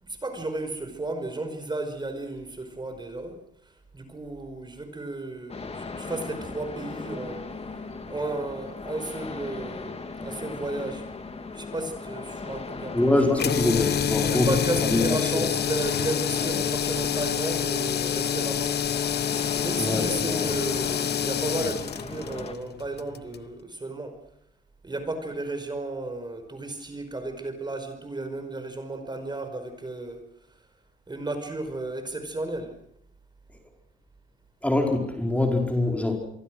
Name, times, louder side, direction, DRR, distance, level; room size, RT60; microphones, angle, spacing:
voice 1, 0.0-7.5 8.1-11.1 11.5-13.6 14.2-18.8 19.6-24.2 24.8-30.2 31.1-32.8, right 2 dB, 20° right, 7 dB, 5.3 m, -34 dB
sound 1, 5.5-22.5, left 4 dB, 30° left, 3.1 m, -38 dB
voice 2, 12.9-14.6 14.9-15.4 16.4-16.5 19.8-20.5 34.6-36.2, left 2 dB, 5° left, 2 dB, 4.9 m, -24 dB
sound 2, 13.4-23.5, left 9 dB, 55° left, 1.0 m, -27 dB
27.5 x 23.5 x 6.3 m, 0.73 s
cardioid pair, 90°, 20 cm